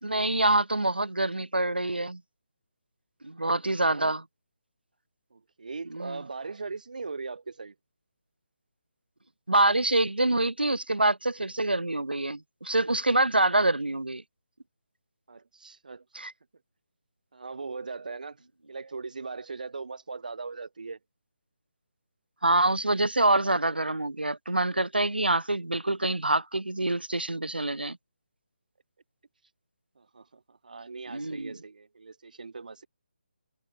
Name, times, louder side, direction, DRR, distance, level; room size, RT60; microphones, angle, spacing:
voice 1, 0.0-2.2 3.2-4.2 5.9-6.2 9.5-14.2 16.1-16.3 22.4-28.0 31.1-31.5, right 2 dB, 75° right, 3.5 m, -26 dB
voice 2, 3.5-4.1 5.3-7.8 15.3-16.3 17.3-18.4 18.7-21.0 30.0-32.9, right 4 dB, 55° right, 3.6 m, -40 dB
figure-of-eight pair, 150°, 5 cm